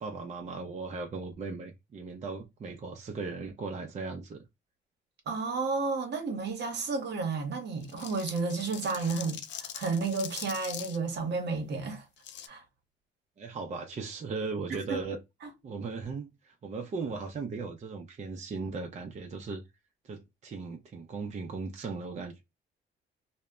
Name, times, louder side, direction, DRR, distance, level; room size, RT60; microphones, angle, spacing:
voice 1, 0.0-4.5 13.4-15.2 15.6-19.6 20.0-22.4, right 4 dB, 35° right, 0.5 m, -37 dB
voice 2, 5.3-12.1 12.5-12.6 14.9-15.0, right 4 dB, 60° right, 0.8 m, -32 dB
sound 1, 7.8-11.0 12.2-12.5, left 9 dB, 65° left, 0.4 m, -42 dB
2.1 x 2.0 x 3.5 m
cardioid pair, 90°, 20 cm